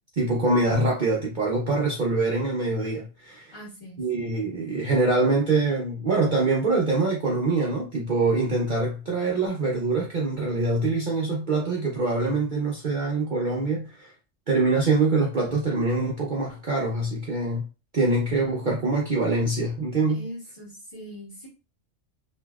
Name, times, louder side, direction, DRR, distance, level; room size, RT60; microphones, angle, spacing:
voice 1, 0.2-3.5 4.0-14.1 14.5-17.7 17.9-20.3, right 3 dB, 50° right, 0.6 m, -24 dB
voice 2, 3.5-4.0 20.1-21.5, equal, 30° left, 1.6 m, -41 dB
3.0 x 2.6 x 2.3 m
omnidirectional pair, 1.3 m